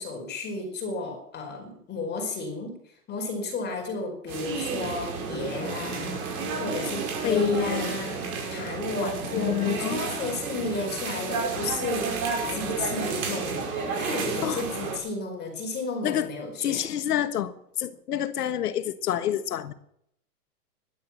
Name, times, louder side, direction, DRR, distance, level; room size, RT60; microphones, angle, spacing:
voice 1, 0.0-2.8 3.1-8.2 8.5-12.1 12.5-16.9, left 2 dB, 20° left, 4.7 m, -33 dB
sound 1, 4.3-15.0, right 4 dB, 65° right, 5.3 m, -31 dB
voice 2, 7.2-8.1 9.0-10.1 14.4-14.6 16.0-16.3 16.6-19.7, left 11 dB, 80° left, 1.5 m, -28 dB
12.5 x 11.5 x 7.4 m
hypercardioid pair, 135°, 46 cm